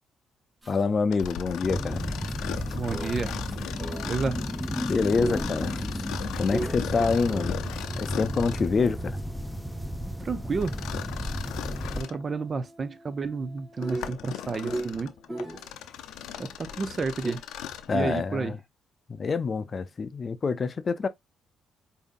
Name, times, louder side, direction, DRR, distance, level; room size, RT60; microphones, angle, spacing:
sound 1, 0.6-0.9 1.2-1.6 2.2-4.2 4.6-15.7 17.2-17.3, right 2 dB, 20° right, 2.8 m, -39 dB
voice 1, 0.7-2.0 4.8-6.0 6.4-7.6 7.9-9.2 17.9-18.6 19.1-21.1, left 4 dB, 40° left, 0.5 m, -26 dB
Mechanisms, 1.1-8.8 10.6-12.2 12.8-12.9 13.6-17.9, left 10 dB, 90° left, 0.5 m, -39 dB
sound 2, 1.6-12.0, equal, 5° left, 0.7 m, -33 dB
voice 2, 2.7-3.4 4.0-4.4 10.2-10.8 11.9-15.1 16.4-17.4 17.9-18.6, right 4 dB, 40° right, 0.6 m, -31 dB
5.0 x 2.7 x 2.5 m
cardioid pair, 90°, 0 cm